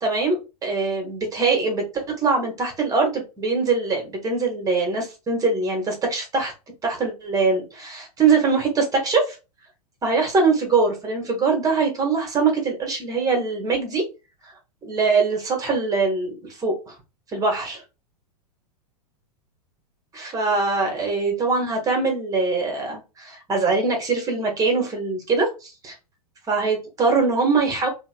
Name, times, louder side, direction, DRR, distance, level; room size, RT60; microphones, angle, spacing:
voice 1, 0.0-6.5 6.8-9.4 10.0-14.0 14.4-14.5 14.8-16.9 17.3-17.8 20.1-25.9 26.5-27.9, right 4 dB, 20° right, 1.1 m, -22 dB
2.9 x 2.7 x 2.4 m
figure-of-eight pair, 100°, 20 cm